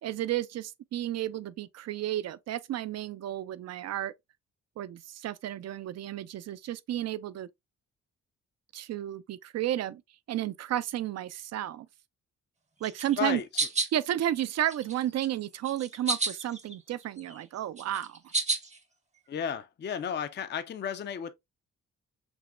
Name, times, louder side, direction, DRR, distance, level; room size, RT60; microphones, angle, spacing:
voice 1, 0.0-4.1 4.8-7.5 8.7-10.0 10.3-11.9 12.8-13.4 13.9-18.2, right 12 dB, 60° right, 0.4 m, -32 dB
sound 1, 12.8-14.0 14.4-15.3 15.6-16.7 17.0-18.8, right 3 dB, 25° right, 0.7 m, -31 dB
voice 2, 19.3-21.3, left 8 dB, 35° left, 0.4 m, -33 dB
6.1 x 2.1 x 2.4 m
cardioid pair, 80°, 30 cm